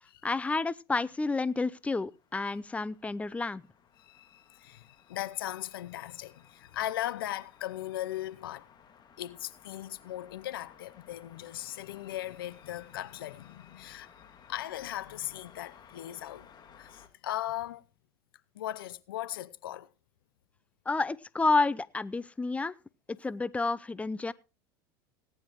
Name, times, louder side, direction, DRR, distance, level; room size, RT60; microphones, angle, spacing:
voice 1, 0.2-3.6 20.9-22.7 23.1-24.3, left 3 dB, 10° left, 0.6 m, -30 dB
sound 1, 1.3-17.1, left 7 dB, 40° left, 2.1 m, -58 dB
voice 2, 4.0-8.7 9.2-17.8 18.5-19.9, left 13 dB, 85° left, 0.7 m, -38 dB
18.5 x 10.0 x 3.1 m
hypercardioid pair, 90°, 11 cm